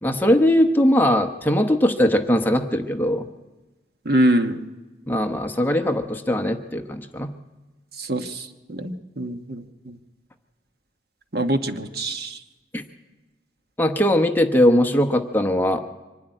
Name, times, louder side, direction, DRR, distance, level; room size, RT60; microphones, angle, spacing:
voice 1, 0.0-3.3 5.1-7.3 12.7-12.8 13.8-15.8, left 1 dB, 10° left, 6 dB, 0.9 m, -20 dB
voice 2, 4.0-4.6 8.0-10.0 11.3-12.4, right 1 dB, 55° right, 7 dB, 1.2 m, -24 dB
24.0 x 12.0 x 10.0 m, 1.2 s
head